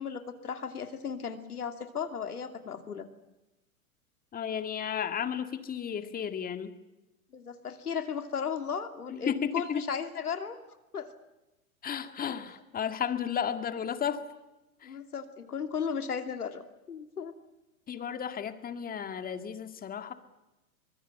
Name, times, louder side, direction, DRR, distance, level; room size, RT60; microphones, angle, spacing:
voice 1, 0.0-3.1 7.3-10.6 10.9-11.1 14.8-17.3, left 7 dB, 85° left, 8 dB, 2.8 m, -35 dB
voice 2, 4.3-6.7 9.1-9.9 11.8-14.2 14.8-14.9 17.9-20.1, left 8 dB, 20° left, 9 dB, 2.0 m, -33 dB
24.0 x 22.0 x 8.1 m, 0.99 s
hypercardioid pair, 110°, 44 cm